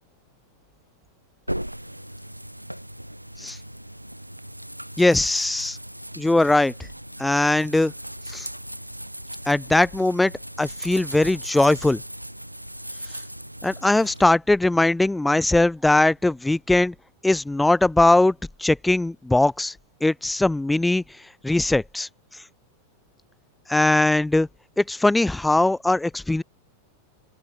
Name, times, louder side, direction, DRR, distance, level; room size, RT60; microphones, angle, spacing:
sound 1, 1.5-14.2, right 1 dB, 90° right, 4.9 m, -38 dB
voice 1, 5.0-5.8 6.2-6.7 7.2-7.9 8.3-8.5 9.5-10.3 10.6-12.0 13.6-16.9 17.2-19.7 20.0-21.0 21.4-22.1 23.7-24.5 24.8-26.4, left 2 dB, 5° left, 1.3 m, -20 dB
open air
figure-of-eight pair, 90°, 0 cm